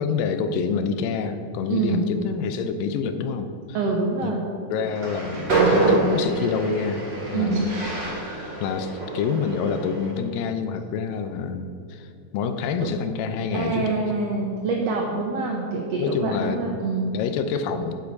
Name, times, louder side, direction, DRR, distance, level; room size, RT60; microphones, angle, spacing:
voice 1, 0.0-3.8 4.2-4.3 4.7-7.1 7.3-7.7 8.2-8.3 8.6-14.0 16.0-16.6 17.1-17.9, left 6 dB, 85° left, 9 dB, 2.4 m, -27 dB
voice 2, 1.7-2.1 3.7-4.4 7.3-7.6 13.5-17.1, right 3 dB, 75° right, 0 dB, 1.5 m, -25 dB
Train, 4.9-10.1, right 3 dB, 35° right, 2.5 m, -26 dB
9.4 x 8.2 x 5.2 m, 2.5 s
omnidirectional pair, 4.0 m